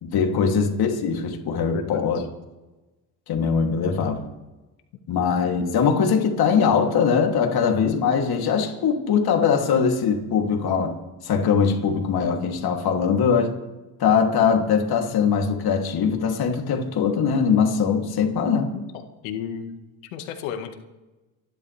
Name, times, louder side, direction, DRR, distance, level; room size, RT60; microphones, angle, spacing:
voice 1, 0.0-2.2 3.3-4.2 5.1-11.0 11.2-13.5 14.0-18.7, left 6 dB, 55° left, 2 dB, 3.0 m, -21 dB
voice 2, 1.7-2.3 18.7-19.8 20.1-20.8, left 8 dB, 90° left, 6 dB, 1.9 m, -34 dB
29.5 x 11.5 x 3.4 m, 1.1 s
supercardioid pair, 90°, 43 cm